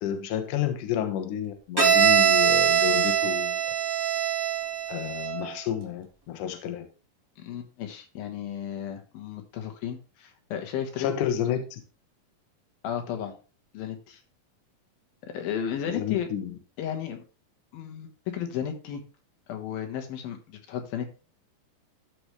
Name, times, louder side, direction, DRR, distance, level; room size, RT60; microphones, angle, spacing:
voice 1, 0.0-3.6 4.9-6.9 11.0-11.8 15.9-16.6, left 10 dB, 70° left, 6 dB, 2.4 m, -30 dB
Bowed string instrument, 1.8-5.5, right 8 dB, 20° right, 0.6 m, -23 dB
voice 2, 7.4-11.2 12.8-13.3 13.7-14.2 15.3-16.3 16.8-17.2 17.7-19.0 19.5-21.1, left 9 dB, 85° left, 5 dB, 3.2 m, -34 dB
13.0 x 4.9 x 3.2 m, 0.35 s
omnidirectional pair, 4.1 m